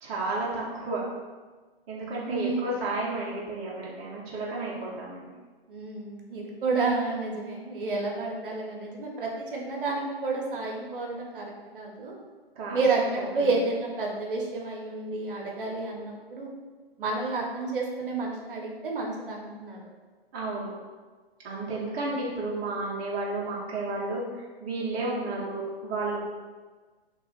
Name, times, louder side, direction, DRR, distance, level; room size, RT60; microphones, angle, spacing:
voice 1, 0.0-1.0 1.9-5.3 12.6-12.8 13.4-13.5 20.3-20.7 21.4-24.2 24.6-26.3, right 2 dB, 20° right, -6 dB, 0.7 m, -32 dB
voice 2, 2.2-2.6 5.7-12.2 12.7-16.5 17.0-19.8, right 3 dB, 60° right, -1 dB, 0.8 m, -30 dB
2.9 x 2.4 x 3.9 m, 1.4 s
figure-of-eight pair, 120°, 31 cm